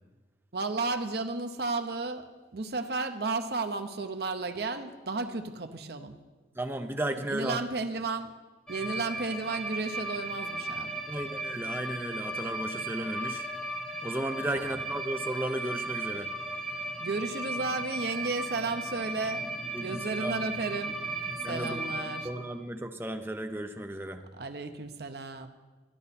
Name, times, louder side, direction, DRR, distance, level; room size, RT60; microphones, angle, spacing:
voice 1, 0.5-2.3 2.5-6.1 7.3-8.3 8.7-11.0 14.5-14.6 17.0-19.5 19.8-21.0 21.5-22.3 24.3-25.5, right 3 dB, 60° right, 7 dB, 0.7 m, -33 dB
voice 2, 6.6-7.6 11.1-13.5 14.0-16.3 19.7-20.4 21.4-21.9 22.2-24.2, right 1 dB, 10° right, 6 dB, 0.6 m, -34 dB
sound 1, 8.7-22.3, right 2 dB, 5° left, 1.1 m, -36 dB
12.5 x 9.9 x 4.2 m, 1.3 s
head